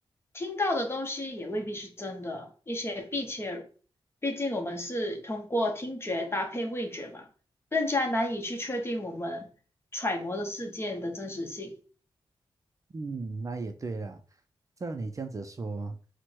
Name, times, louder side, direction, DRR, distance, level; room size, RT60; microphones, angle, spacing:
voice 1, 0.3-3.7 4.2-7.3 7.7-9.5 9.9-11.8, left 1 dB, 25° left, 0.9 m, -32 dB
voice 2, 12.9-14.2 14.8-16.0, right 3 dB, 35° right, 0.4 m, -35 dB
4.5 x 2.1 x 4.4 m
wide cardioid pair, 90°, 10 cm